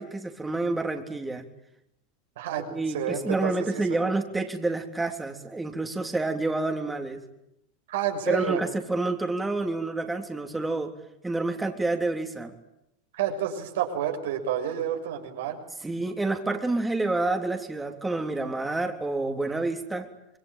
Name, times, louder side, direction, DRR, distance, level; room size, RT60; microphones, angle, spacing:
voice 1, 0.0-1.5 2.6-7.2 8.3-10.9 11.2-12.5 15.8-20.1, right 2 dB, 10° right, 3 dB, 3.5 m, -28 dB
voice 2, 2.4-3.8 7.9-8.6 13.1-15.6, right 9 dB, 80° right, 3 dB, 6.6 m, -29 dB
26.5 x 22.0 x 9.3 m, 0.82 s
hypercardioid pair, 105°, 0 cm